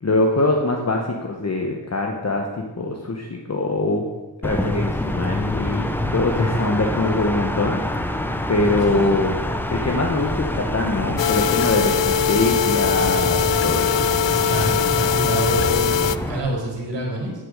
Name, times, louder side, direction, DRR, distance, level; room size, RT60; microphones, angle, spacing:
voice 1, 0.0-4.1 4.4-8.1 8.5-9.3 9.7-14.0, left 2 dB, 40° left, 2 dB, 1.2 m, -23 dB
sound 1, 4.4-16.4, left 1 dB, 5° left, 0.8 m, -26 dB
sound 2, 11.2-16.2, left 7 dB, 85° left, 0.6 m, -21 dB
voice 2, 14.4-15.9 16.3-17.3, right 1 dB, 90° right, 0 dB, 4.0 m, -27 dB
10.5 x 8.1 x 6.6 m, 1.1 s
wide cardioid pair, 145°, 42 cm